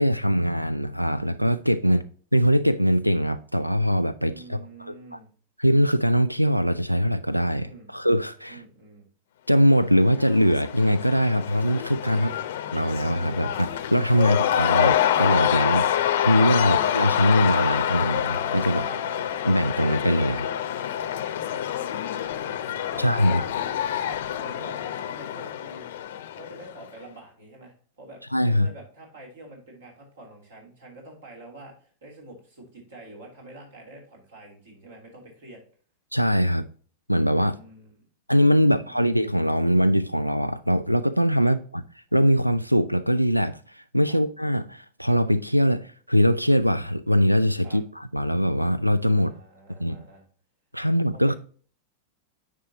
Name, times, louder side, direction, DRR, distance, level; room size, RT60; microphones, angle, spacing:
voice 1, 0.0-2.0 2.3-5.2 5.6-8.6 9.5-12.3 12.7-15.8 16.2-18.9 19.4-20.5 23.0-23.4 28.3-28.7 36.1-36.7 37.1-37.6 38.3-41.8 42.1-49.3 49.8-50.0 50.7-51.4, equal, 90° right, 0.3 m, -22 dB
voice 2, 4.2-5.3 7.6-7.9 8.5-9.1 12.2-12.5 14.2-14.4 15.7-15.9 18.8-19.0 21.1-23.7 24.3-25.9 26.3-35.6 37.5-38.1 38.6-39.0 41.4-41.5 44.1-44.2 47.6-47.8 49.1-50.3 51.1-51.4, right 2 dB, 65° right, 2.9 m, -47 dB
Cheering / Crowd, 9.9-26.8, left 10 dB, 55° left, 0.6 m, -27 dB
9.9 x 4.7 x 2.8 m
figure-of-eight pair, 90°, 0 cm